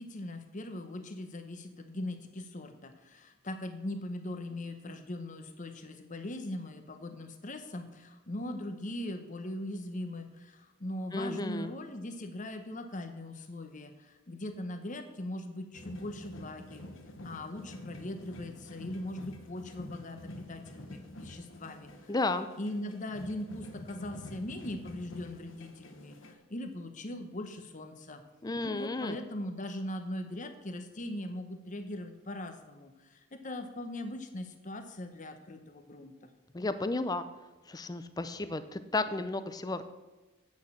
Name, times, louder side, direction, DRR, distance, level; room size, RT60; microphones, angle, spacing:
voice 1, 0.0-16.8 17.2-22.1 22.6-28.2 28.6-36.3, left 1 dB, 35° left, 7 dB, 0.9 m, -40 dB
voice 2, 11.1-11.7 22.1-22.5 28.4-29.1 36.5-37.2 37.7-39.8, left 2 dB, 20° left, 11 dB, 0.5 m, -33 dB
sound 1, 15.7-26.3, left 1 dB, 60° left, 1.1 m, -47 dB
8.7 x 6.3 x 7.1 m, 1.2 s
head